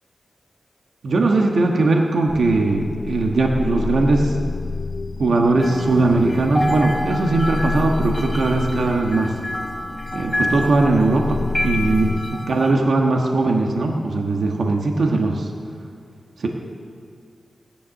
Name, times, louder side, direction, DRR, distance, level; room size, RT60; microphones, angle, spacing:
voice 1, 1.0-4.4 5.2-9.3 10.1-15.5 16.4-16.5, right 2 dB, 70° right, 1 dB, 1.4 m, -19 dB
sound 1, 2.3-12.2, left 4 dB, 65° left, 0.4 m, -29 dB
sound 2, 5.6-12.7, left 1 dB, 10° left, 2.0 m, -29 dB
16.5 x 10.5 x 6.5 m, 2.2 s
wide cardioid pair, 120°, 0 cm